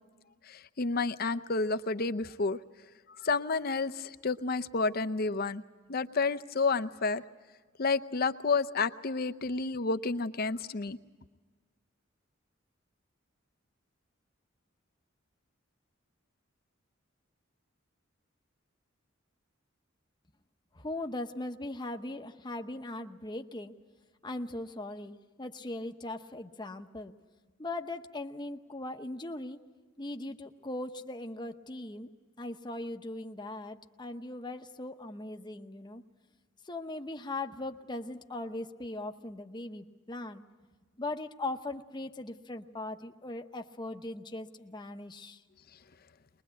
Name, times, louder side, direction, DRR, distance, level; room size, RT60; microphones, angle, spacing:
voice 1, 0.5-2.6 3.2-5.6 5.9-7.2 7.8-11.0, left 4 dB, 50° left, 10 dB, 0.7 m, -30 dB
voice 2, 20.7-23.7 24.2-27.1 27.6-29.6 30.0-32.1 32.4-36.0 36.7-40.4 41.0-45.4, left 2 dB, 20° left, 6 dB, 0.9 m, -39 dB
22.5 x 21.0 x 8.3 m, 1.4 s
head